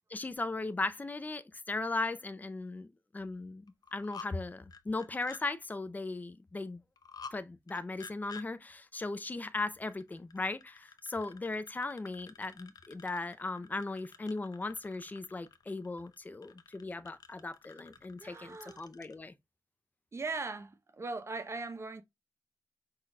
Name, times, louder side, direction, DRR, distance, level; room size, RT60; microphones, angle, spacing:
voice 1, 0.1-6.8 7.3-19.3, left 3 dB, 25° left, 0.5 m, -38 dB
sound 1, 3.7-4.3 4.7-5.4 7.0-7.4 7.7-8.4 9.9-19.2, left 5 dB, 65° left, 0.6 m, -51 dB
voice 2, 18.2-18.8 20.1-22.0, right 3 dB, 40° right, 0.8 m, -39 dB
5.7 x 3.9 x 2.2 m
wide cardioid pair, 135°, 7 cm